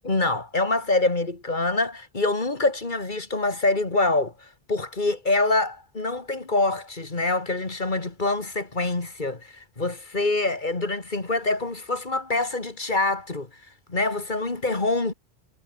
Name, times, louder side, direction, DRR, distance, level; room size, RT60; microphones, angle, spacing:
voice 1, 0.0-4.3 4.7-13.5 13.9-15.1, left 2 dB, 50° left, 2.5 m, -25 dB
omnidirectional pair, 1.0 m